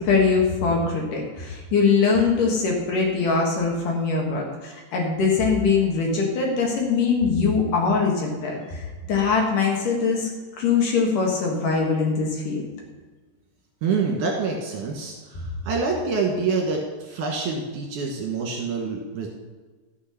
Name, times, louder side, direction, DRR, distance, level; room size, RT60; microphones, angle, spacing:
voice 1, 0.0-10.3 10.6-12.6, left 5 dB, 60° left, -1 dB, 3.0 m, -22 dB
voice 2, 13.8-19.3, right 4 dB, 60° right, 0 dB, 2.5 m, -26 dB
13.0 x 6.7 x 5.8 m, 1.3 s
omnidirectional pair, 4.6 m